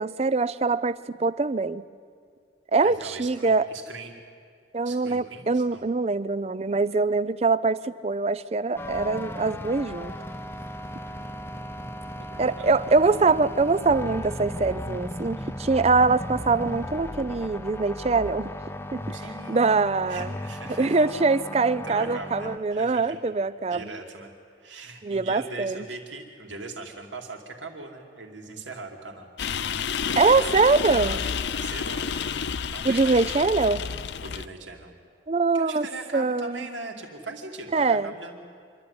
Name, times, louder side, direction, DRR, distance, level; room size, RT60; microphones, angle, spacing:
voice 1, 0.0-1.8 2.7-3.7 4.7-10.1 12.4-18.5 18.9-19.2 19.5-20.3 20.8-23.9 25.0-25.8 30.2-31.2 32.8-33.8 35.3-35.9 36.1-36.7 37.7-38.1, right 3 dB, 35° right, 17 dB, 0.4 m, -23 dB
voice 2, 2.8-4.2 4.8-5.9 11.1-13.3 19.1-19.7 20.1-21.1 21.8-23.2 23.7-24.3 24.6-29.3 30.1-32.1 32.7-33.5 34.2-34.9 35.5-38.5, right 3 dB, 80° right, 2 dB, 2.6 m, -41 dB
sound 1, 8.8-22.6, left 1 dB, 10° left, 0.7 m, -36 dB
sound 2, 29.4-34.5, left 7 dB, 65° left, 0.5 m, -30 dB
26.5 x 12.0 x 9.7 m, 2.1 s
head